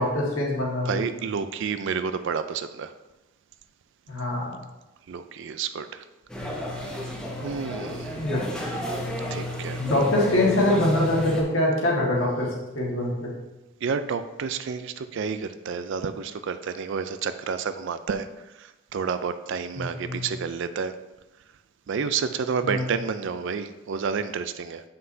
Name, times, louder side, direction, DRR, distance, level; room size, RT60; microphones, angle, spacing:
voice 1, 0.0-1.0 4.1-4.6 8.1-8.4 9.8-12.5 12.7-13.3 19.8-20.3 22.6-22.8, left 1 dB, 65° left, -3 dB, 1.6 m, -24 dB
voice 2, 0.9-2.9 5.1-6.0 6.7-6.9 7.4-8.1 9.3-9.8 13.8-18.3 18.6-20.9 21.9-24.8, right 6 dB, 60° right, 11 dB, 0.3 m, -30 dB
sound 1, 6.3-11.4, left 1 dB, 5° left, 0.8 m, -31 dB
7.6 x 5.7 x 2.7 m, 1.0 s
head